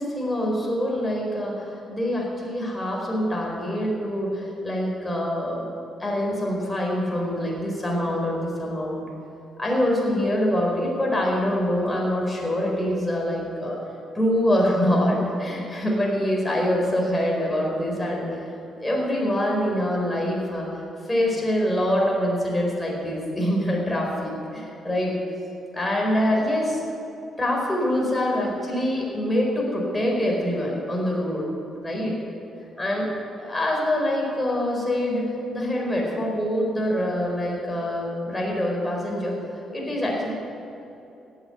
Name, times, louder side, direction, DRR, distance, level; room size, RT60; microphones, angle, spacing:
voice 1, 0.0-5.7 6.0-9.0 9.6-13.8 14.1-18.3 18.8-20.7 21.1-25.1 25.7-26.8 27.4-31.5 31.8-32.1 32.8-33.1 33.4-39.3 39.7-40.3, left 1 dB, 15° left, -2 dB, 4.5 m, -25 dB
16.5 x 9.2 x 7.9 m, 2.9 s
cardioid pair, 90°, 0 cm